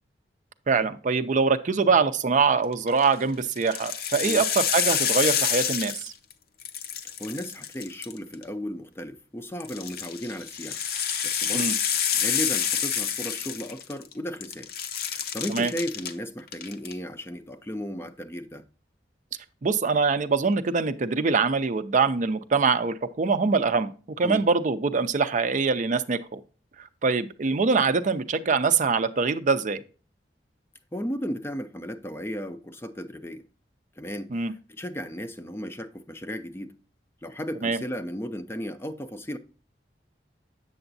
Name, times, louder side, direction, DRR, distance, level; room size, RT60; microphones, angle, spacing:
voice 1, 0.7-6.1 11.5-11.7 15.5-15.7 19.6-26.4 26.8-29.8 34.3-34.5 37.6-37.8, right 4 dB, 45° right, 0.5 m, -24 dB
sound 1, 2.7-3.1 3.6-6.3 6.6-8.4 9.6-14.1 14.4-16.1 16.5-16.9, left 8 dB, 55° left, 0.6 m, -28 dB
voice 2, 7.0-10.8 11.2-14.7 15.1-18.6 24.2-24.5 30.9-33.4 34.0-36.7 37.2-39.4, equal, 15° left, 0.4 m, -35 dB
7.8 x 6.9 x 2.6 m
head